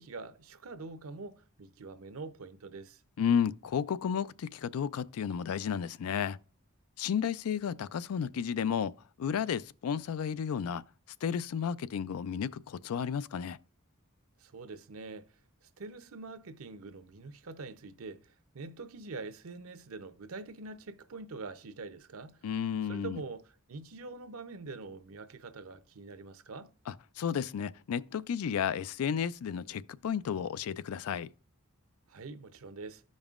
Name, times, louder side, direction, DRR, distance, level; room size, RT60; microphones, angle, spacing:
voice 1, 0.0-3.0 14.4-15.3 15.6-22.5 22.9-26.7 32.1-33.0, right 3 dB, 75° right, 0.7 m, -45 dB
voice 2, 3.2-6.4 7.0-10.8 11.2-13.6 22.4-23.2 26.9-31.3, left 7 dB, 85° left, 0.4 m, -32 dB
13.5 x 5.3 x 2.4 m
head